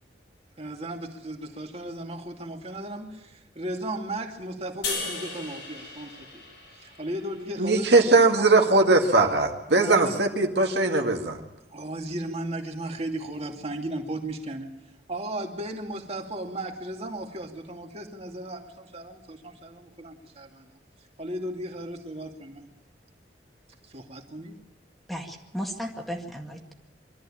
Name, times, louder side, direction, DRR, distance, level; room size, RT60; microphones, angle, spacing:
voice 1, 0.6-6.4 6.8-7.9 8.4-8.5 9.8-10.1 11.7-14.7 15.1-20.7 21.2-22.7 23.9-24.6, right 1 dB, 35° right, 3 dB, 2.5 m, -35 dB
sound 1, 4.8-8.1, left 3 dB, 85° left, 6.6 m, -37 dB
voice 2, 7.6-11.4, right 3 dB, 70° right, 3 dB, 2.2 m, -20 dB
voice 3, 25.1-26.7, equal, ahead, 2 dB, 2.0 m, -35 dB
23.5 x 13.5 x 8.8 m, 1.0 s
head